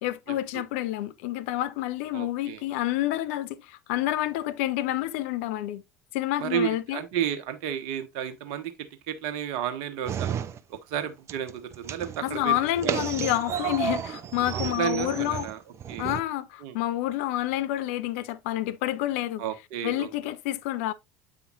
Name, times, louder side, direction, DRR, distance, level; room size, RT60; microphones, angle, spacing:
voice 1, 0.0-5.8 6.1-7.0 12.2-15.5 16.0-19.4 19.8-20.9, left 14 dB, 60° left, 0.5 m, -28 dB
voice 2, 2.1-2.6 6.4-8.7 9.1-10.4 10.7-12.5 12.8-13.0 14.5-15.6 15.9-16.1 16.6-16.8 19.4-20.1, right 10 dB, 60° right, 1.2 m, -32 dB
sound 1, 10.1-11.0 11.3-16.2, right 8 dB, 35° right, 0.7 m, -32 dB
8.5 x 5.0 x 2.6 m
figure-of-eight pair, 65°, 8 cm